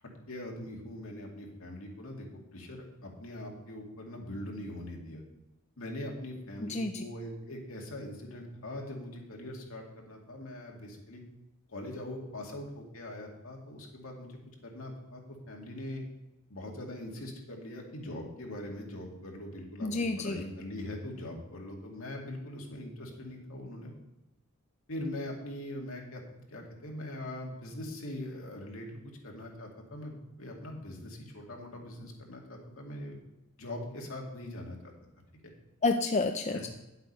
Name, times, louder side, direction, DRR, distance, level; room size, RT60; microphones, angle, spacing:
voice 1, 0.3-5.2 5.8-11.2 11.7-16.0 16.5-23.9 24.9-26.2 26.5-33.2 33.6-34.9 36.5-36.6, left 1 dB, 70° left, 0 dB, 2.3 m, -42 dB
voice 2, 6.6-7.0 19.8-20.5 35.8-36.7, left 3 dB, 30° left, 6 dB, 0.5 m, -30 dB
10.0 x 8.0 x 5.5 m, 0.96 s
head